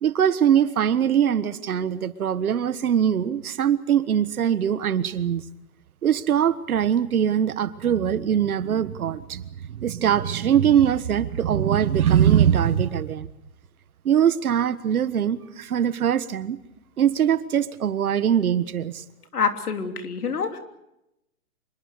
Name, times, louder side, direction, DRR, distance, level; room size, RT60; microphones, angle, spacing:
voice 1, 0.0-5.4 6.0-13.3 14.0-16.6 17.0-19.0, right 9 dB, 75° right, 15 dB, 1.6 m, -22 dB
voice 2, 19.3-20.6, left 6 dB, 85° left, 7 dB, 3.4 m, -26 dB
26.0 x 22.0 x 6.7 m, 0.86 s
hypercardioid pair, 145°, 44 cm